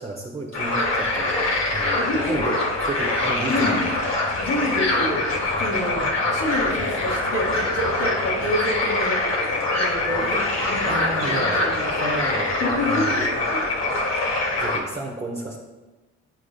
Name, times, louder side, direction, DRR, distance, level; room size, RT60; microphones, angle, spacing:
voice 1, 0.0-2.6 2.9-3.8 4.2-4.5 6.0-6.3 10.9-11.6 11.9-13.4 14.6-15.6, right 2 dB, 20° right, -3 dB, 0.9 m, -32 dB
sound 1, 0.5-14.8, left 2 dB, 60° left, 1.7 m, -24 dB
voice 2, 1.9-2.4 3.5-3.8 4.4-5.2 5.6-12.2 12.6-13.2 13.5-13.7, left 1 dB, 90° left, -3 dB, 2.2 m, -28 dB
10.5 x 4.8 x 2.3 m, 1.1 s
cardioid pair, 90°, 30 cm